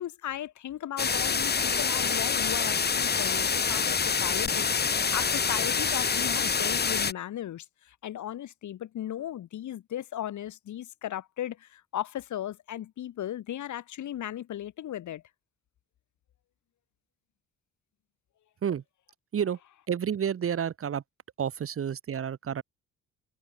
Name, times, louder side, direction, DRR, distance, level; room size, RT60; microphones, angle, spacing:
voice 1, 0.0-15.2, left 12 dB, 70° left, 4.3 m, -36 dB
sound 1, 1.0-7.1, left 5 dB, 35° left, 1.8 m, -26 dB
voice 2, 19.9-21.0 21.4-22.6, right 8 dB, 45° right, 1.5 m, -30 dB
cardioid pair, 90°, 30 cm